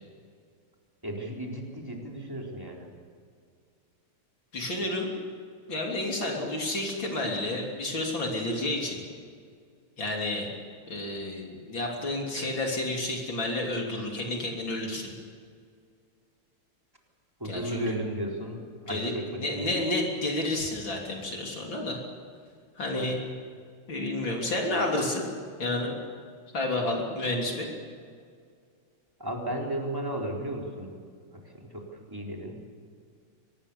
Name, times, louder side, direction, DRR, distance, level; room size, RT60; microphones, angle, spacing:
voice 1, 1.0-2.9 17.4-19.8 29.2-31.0 31.3-32.6, right 1 dB, 10° right, -1 dB, 4.0 m, -34 dB
voice 2, 4.5-5.1 5.7-9.0 10.0-10.5 10.9-15.1 17.4-17.9 18.9-19.1 19.4-22.0 22.8-23.2 23.9-25.3 25.6-25.9 26.5-27.7, left 2 dB, 60° left, 0 dB, 4.0 m, -30 dB
24.0 x 19.5 x 7.0 m, 2.1 s
omnidirectional pair, 2.4 m